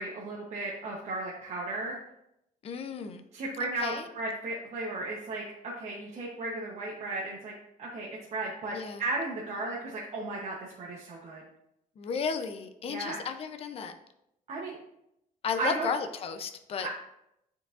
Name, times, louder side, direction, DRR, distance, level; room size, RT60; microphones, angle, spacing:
voice 1, 0.0-2.0 3.3-7.5 7.8-11.4 12.9-13.2 14.5-14.8 15.6-15.9 16.8-16.9, right 2 dB, 45° right, -3 dB, 0.9 m, -35 dB
voice 2, 2.6-3.2 3.6-4.1 8.7-9.0 12.0-13.9 15.4-16.9, left 6 dB, 40° left, 8 dB, 0.5 m, -34 dB
9.2 x 4.6 x 2.5 m, 0.80 s
cardioid pair, 175°, 15 cm